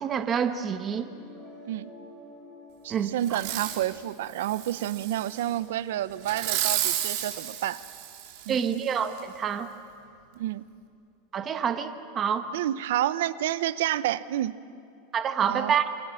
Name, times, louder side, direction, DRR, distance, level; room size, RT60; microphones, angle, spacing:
voice 1, 0.0-1.1 2.9-3.1 8.5-9.7 11.3-12.5 15.1-15.8, right 7 dB, 20° right, 8 dB, 1.1 m, -27 dB
sound 1, 0.8-6.8, left 1 dB, 5° left, 5.6 m, -52 dB
voice 2, 2.8-7.8 8.5-8.7 10.4-10.6 12.5-14.5 15.5-15.7, right 13 dB, 75° right, 16 dB, 0.7 m, -29 dB
Fireworks, 3.2-3.9 4.4-5.4 6.2-8.6 9.2-9.3, right 12 dB, 55° right, 3.2 m, -32 dB
28.0 x 26.0 x 6.4 m, 2.5 s
supercardioid pair, 160°, 0 cm